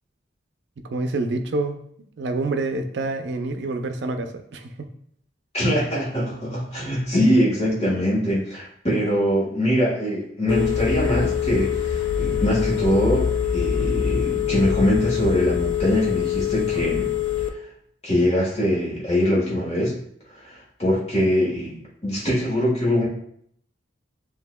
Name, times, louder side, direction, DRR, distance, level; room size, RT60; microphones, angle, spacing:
voice 1, 0.8-1.8 2.2-4.9, right 2 dB, 65° right, 6 dB, 0.5 m, -27 dB
voice 2, 5.5-17.1 18.0-20.0 20.4-23.1, equal, 30° left, -5 dB, 1.4 m, -23 dB
Telephone, 10.5-17.5, left 8 dB, 85° left, 0.4 m, -24 dB
7.0 x 2.7 x 2.2 m, 0.66 s
head